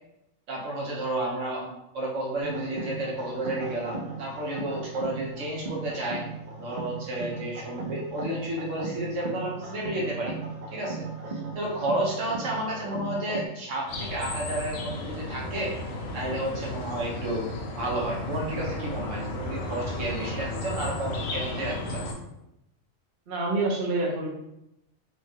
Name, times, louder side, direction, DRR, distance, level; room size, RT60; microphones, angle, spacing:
voice 1, 0.5-1.7 1.9-6.2 6.6-10.4 10.7-15.7 16.1-17.5 17.7-22.0, right 1 dB, 70° right, -3 dB, 1.1 m, -31 dB
sound 1, 2.4-13.5, right 3 dB, 85° right, 0.4 m, -37 dB
sound 2, 13.9-22.1, left 1 dB, 75° left, 1.0 m, -34 dB
voice 2, 23.3-24.3, right 2 dB, 55° right, -2 dB, 0.7 m, -27 dB
3.2 x 2.3 x 2.6 m, 0.85 s
omnidirectional pair, 1.4 m